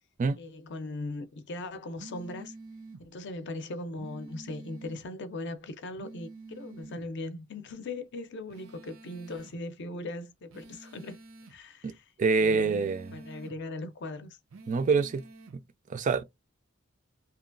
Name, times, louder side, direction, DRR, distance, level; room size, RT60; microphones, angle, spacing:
voice 1, 0.4-2.5 3.0-11.2 11.5-12.0 12.4-14.4, left 2 dB, 60° left, 0.6 m, -39 dB
sound 1, 2.0-3.0 4.0-5.0 6.0-7.0 8.5-9.6 10.5-11.6 12.5-13.6 14.5-15.5, right 2 dB, 75° right, 0.6 m, -47 dB
voice 2, 12.2-13.2 14.7-15.2 15.5-15.6 15.9-16.2, right 4 dB, 40° right, 0.3 m, -26 dB
2.9 x 2.2 x 2.4 m
head